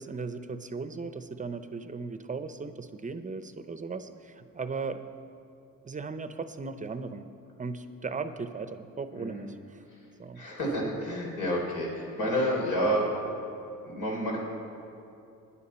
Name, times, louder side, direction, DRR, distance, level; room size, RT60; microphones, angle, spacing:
voice 1, 0.0-5.0 5.8-7.3 7.6-9.8 10.2-10.5, right 4 dB, 25° right, 10 dB, 0.6 m, -37 dB
voice 2, 10.3-13.1 13.8-14.4, equal, 85° left, -2 dB, 3.3 m, -29 dB
17.0 x 10.0 x 4.3 m, 2.6 s
cardioid pair, 90°, 30 cm